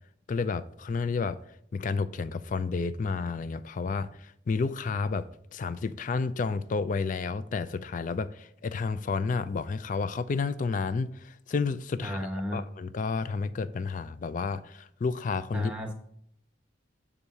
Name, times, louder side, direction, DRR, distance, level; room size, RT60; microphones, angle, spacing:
voice 1, 0.3-1.4 1.7-12.2 12.5-15.7, left 4 dB, 40° left, 0.3 m, -31 dB
voice 2, 12.0-12.6 15.5-15.9, equal, 5° right, 1.3 m, -33 dB
8.6 x 3.6 x 5.5 m
head